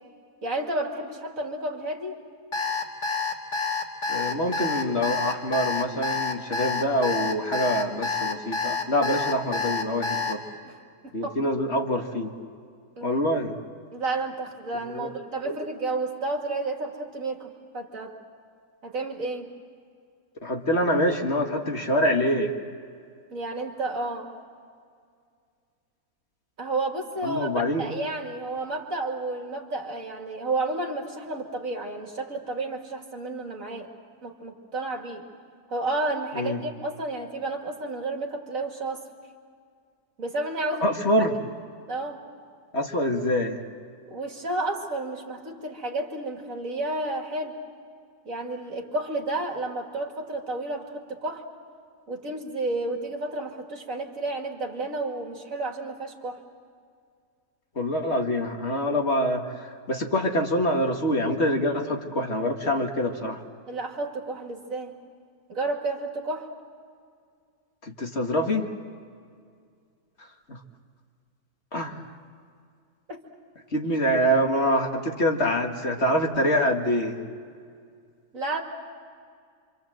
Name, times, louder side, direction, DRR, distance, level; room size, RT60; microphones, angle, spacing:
voice 1, 0.4-2.3 10.6-10.8 11.0-11.4 13.0-13.2 13.9-18.2 18.8-19.5 23.3-24.3 26.6-33.9 34.2-35.3 35.7-39.0 40.2-41.0 41.9-42.2 44.1-47.6 48.2-51.5 52.1-56.4 63.7-65.0 65.5-66.5 73.1-73.2 78.3-78.6, right 2 dB, 60° right, 2 dB, 2.7 m, -31 dB
Alarm, 2.5-10.3, left 4 dB, 85° left, 3.1 m, -28 dB
voice 2, 4.1-10.4 11.1-12.3 13.0-13.5 14.9-15.1 15.4-15.6 20.4-22.5 27.2-27.8 36.3-36.6 40.8-41.3 42.7-43.6 57.8-63.4 67.8-68.7 70.5-70.6 71.7-72.0 73.7-77.2, equal, 45° left, 2 dB, 2.1 m, -25 dB
27.0 x 26.5 x 7.7 m, 2.2 s
omnidirectional pair, 1.7 m